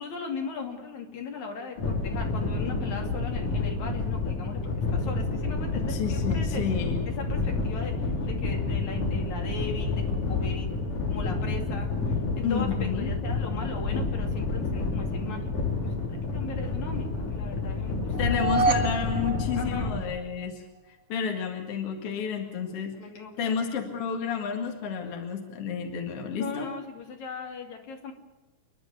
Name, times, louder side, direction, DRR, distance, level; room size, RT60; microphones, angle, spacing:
voice 1, 0.0-6.6 7.2-10.7 11.1-11.9 12.4-18.4 19.6-19.9 22.6-22.7 23.0-23.6 26.4-28.1, left 4 dB, 65° left, 2 dB, 4.0 m, -38 dB
sound 1, 1.8-20.0, left 3 dB, 90° left, 6.1 m, -29 dB
voice 2, 5.7-7.0 12.4-13.1 18.2-20.6 20.9-22.9 23.4-26.7, left 6 dB, 50° left, 3 dB, 2.8 m, -31 dB
sound 2, 18.1-20.4, right 2 dB, 40° right, 1.6 m, -28 dB
28.5 x 11.5 x 9.6 m, 1.1 s
omnidirectional pair, 3.5 m